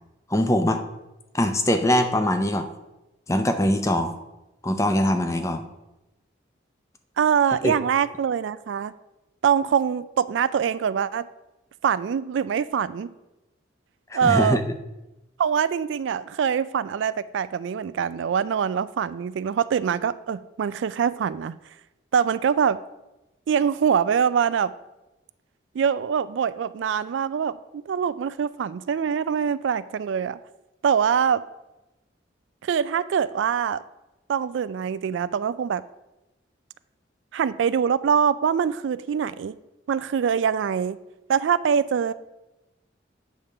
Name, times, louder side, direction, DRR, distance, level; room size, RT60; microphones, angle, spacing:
voice 1, 0.3-0.8 1.3-2.7 3.3-4.1 4.6-5.6 7.6-7.7 14.1-14.6, left 1 dB, 15° left, 7 dB, 0.6 m, -22 dB
voice 2, 7.2-8.9 9.4-11.3 11.8-13.1 14.1-14.6 15.4-21.6 22.1-22.8 23.5-24.7 25.8-30.4 30.8-31.4 32.6-33.8 34.3-35.8 37.3-39.5 39.9-41.0 41.3-42.1, right 7 dB, 75° right, 15 dB, 0.3 m, -24 dB
8.5 x 3.7 x 6.5 m, 0.98 s
head